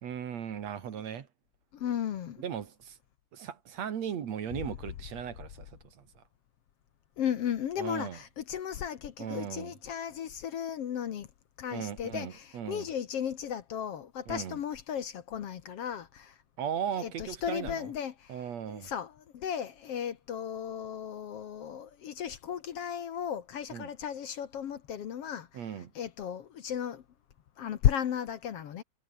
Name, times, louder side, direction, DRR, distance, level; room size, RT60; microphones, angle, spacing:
voice 1, 0.0-1.3 2.4-3.0 3.3-5.7 6.0-6.2 7.8-8.2 9.2-9.7 11.7-12.9 14.3-14.6 16.6-17.9 18.3-18.9 23.7-23.9 25.5-25.9, right 8 dB, 65° right, 3.0 m, -37 dB
voice 2, 1.7-2.4 7.2-11.3 11.6-16.3 17.0-18.3 18.7-25.5 26.0-27.0 27.6-28.8, left 9 dB, 60° left, 2.0 m, -34 dB
omnidirectional pair, 3.4 m